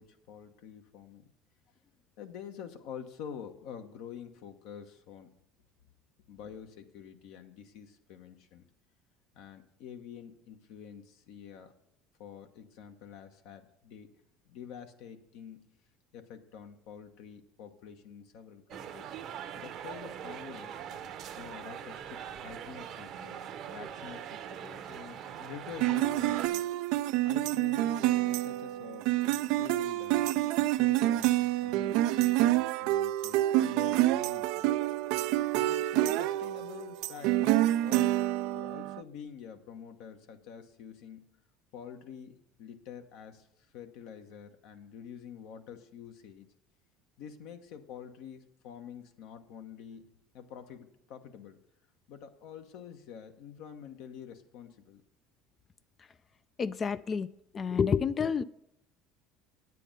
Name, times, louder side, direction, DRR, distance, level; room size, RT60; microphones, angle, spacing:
voice 1, 0.0-1.3 2.2-5.3 6.3-8.6 9.3-11.7 12.2-14.1 14.4-15.6 16.1-19.1 19.5-20.8 21.4-23.4 23.7-26.6 27.2-30.3 30.8-34.6 35.6-38.2 38.5-41.3 41.7-46.5 47.2-50.1 50.3-51.6 52.1-55.0, left 8 dB, 70° left, 7 dB, 1.0 m, -47 dB
sound 1, 18.7-26.5, right 9 dB, 55° right, 0.8 m, -42 dB
sound 2, 25.8-39.0, right 15 dB, 70° right, 0.3 m, -28 dB
voice 2, 56.6-57.3 57.5-58.4, left 6 dB, 35° left, 15 dB, 0.3 m, -29 dB
9.1 x 8.3 x 5.3 m, 0.78 s
supercardioid pair, 85°, 0 cm